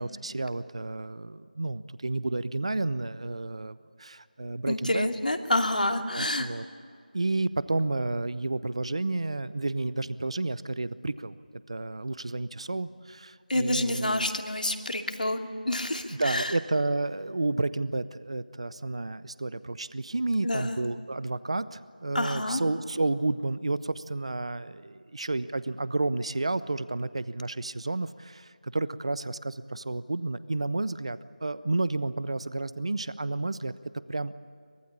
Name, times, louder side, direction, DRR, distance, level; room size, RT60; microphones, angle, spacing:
voice 1, 0.0-5.1 6.1-6.6 7.1-14.3 16.1-33.7 34.1-34.3, right 2 dB, 40° right, 16 dB, 0.7 m, -31 dB
voice 2, 4.7-6.5 13.5-16.6 20.4-20.8 22.1-22.6, left 1 dB, 70° left, 5 dB, 2.6 m, -28 dB
24.0 x 22.5 x 8.6 m, 2.3 s
figure-of-eight pair, 175°, 5 cm